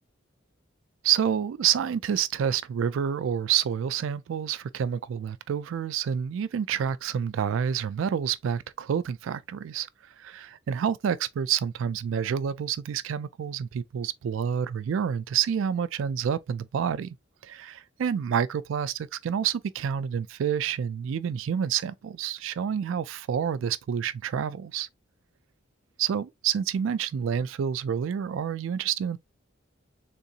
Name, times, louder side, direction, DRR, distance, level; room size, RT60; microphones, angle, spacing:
voice 1, 1.0-9.9 10.2-17.2 17.4-24.9 26.0-29.2, right 8 dB, 75° right, 0.3 m, -28 dB
3.7 x 2.7 x 2.4 m
head